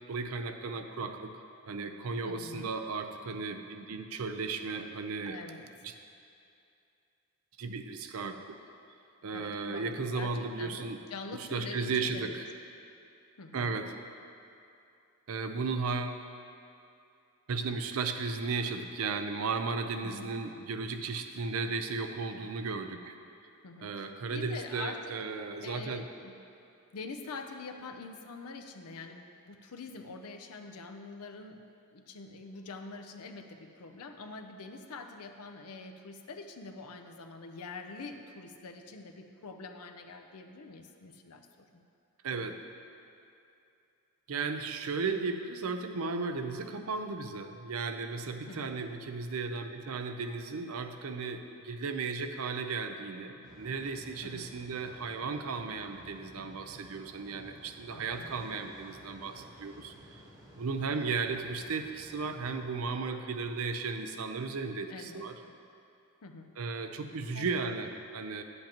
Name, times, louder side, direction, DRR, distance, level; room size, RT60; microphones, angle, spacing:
voice 1, 0.1-1.3 1.7-5.4 5.8-5.9 7.6-8.6 9.2-11.0 11.3-12.4 13.5-13.9 15.3-16.2 17.5-23.2 23.8-26.1 42.2-42.6 44.3-60.2 60.6-65.3 66.6-68.4, right 4 dB, 70° right, 7 dB, 0.5 m, -35 dB
voice 2, 2.2-2.7 5.3-5.7 9.3-9.9 10.1-12.4 13.4-13.8 20.0-20.4 23.6-25.1 25.6-26.4 26.9-31.7 31.9-41.5 41.7-41.9 48.5-48.8 54.2-54.6 57.9-58.5 64.9-65.6 66.2-66.6 67.3-67.6, left 3 dB, 80° left, 5 dB, 0.6 m, -45 dB
sound 1, 53.4-62.6, equal, 15° right, 1.0 m, -53 dB
10.0 x 8.0 x 3.0 m, 2.6 s
head